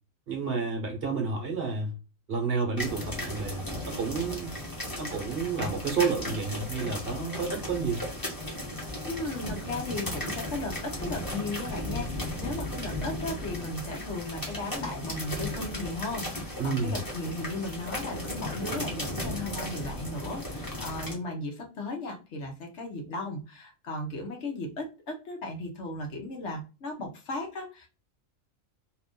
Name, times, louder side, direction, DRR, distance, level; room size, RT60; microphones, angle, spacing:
voice 1, 0.3-2.0 2.3-4.6 5.0-8.0 16.6-17.0, right 5 dB, 50° right, 1.0 m, -30 dB
sound 1, 2.8-21.1, left 1 dB, 15° left, 1.0 m, -36 dB
voice 2, 9.0-27.9, left 2 dB, 60° left, 1.1 m, -36 dB
2.9 x 2.5 x 3.6 m
omnidirectional pair, 1.4 m